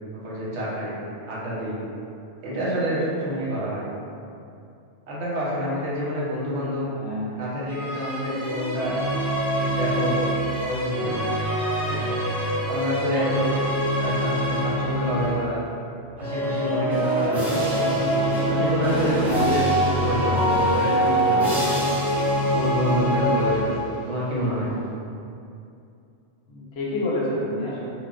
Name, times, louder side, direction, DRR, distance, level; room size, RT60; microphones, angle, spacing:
voice 1, 0.2-1.0 1.3-1.8 2.4-3.8 5.1-6.9 7.4-9.0 9.6-10.2 10.5-11.2 11.8-12.1 12.7-13.5 14.0-15.6 16.2-19.7 20.0-21.8 22.3-24.8, equal, 70° right, -7 dB, 1.0 m, -27 dB
voice 2, 6.8-7.3 26.5-27.9, left 1 dB, 65° left, -6 dB, 0.8 m, -28 dB
sound 1, 7.7-15.5 16.1-24.1, equal, 5° right, 0.3 m, -24 dB
2.2 x 2.1 x 3.7 m, 2.6 s
omnidirectional pair, 1.2 m